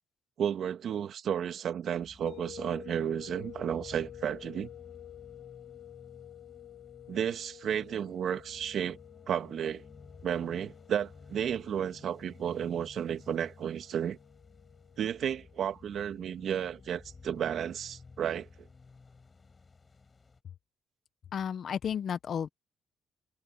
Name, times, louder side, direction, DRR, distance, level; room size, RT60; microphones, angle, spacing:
voice 1, 0.4-4.7 7.1-9.0 9.3-9.8 10.2-14.2 15.0-18.5, right 9 dB, 65° right, 1.9 m, -33 dB
sound 1, 2.0-20.4, left 4 dB, 30° left, 6.1 m, -54 dB
sound 2, 2.3-17.2, left 13 dB, 85° left, 4.2 m, -51 dB
voice 2, 21.3-22.5, left 8 dB, 55° left, 1.2 m, -33 dB
cardioid pair, 90°, 0 cm